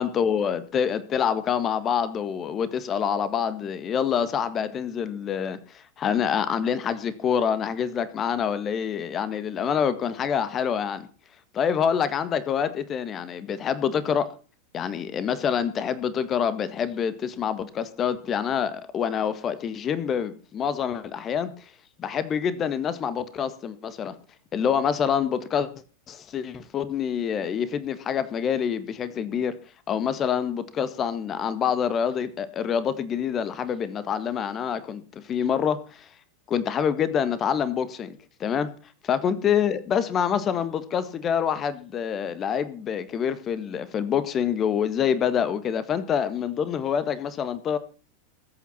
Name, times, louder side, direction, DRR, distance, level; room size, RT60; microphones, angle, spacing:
voice 1, 0.0-11.1 11.5-14.3 14.7-21.6 22.0-24.1 24.5-25.7 26.1-29.6 29.9-36.1 36.5-38.1 38.4-38.7 39.1-47.8, left 8 dB, 25° left, 14 dB, 1.7 m, -26 dB
21.0 x 8.8 x 5.7 m, 0.37 s
figure-of-eight pair, 90°, 0 cm